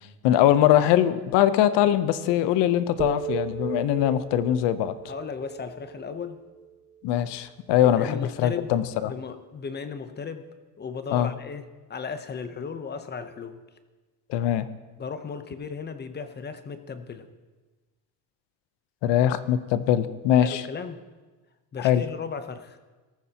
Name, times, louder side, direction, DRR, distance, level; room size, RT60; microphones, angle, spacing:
voice 1, 0.2-4.9 7.0-9.1 11.1-11.3 14.3-14.7 19.0-20.6 21.8-22.0, left 11 dB, 75° left, 13 dB, 0.8 m, -22 dB
sound 1, 3.0-7.1, right 10 dB, 25° right, 0.5 m, -36 dB
voice 2, 5.1-6.4 7.8-8.7 9.0-10.5 10.8-13.6 15.0-17.3 20.4-21.0 21.7-22.8, left 5 dB, 25° left, 10 dB, 0.8 m, -36 dB
19.0 x 14.0 x 2.9 m, 1.3 s
cardioid pair, 135°, 43 cm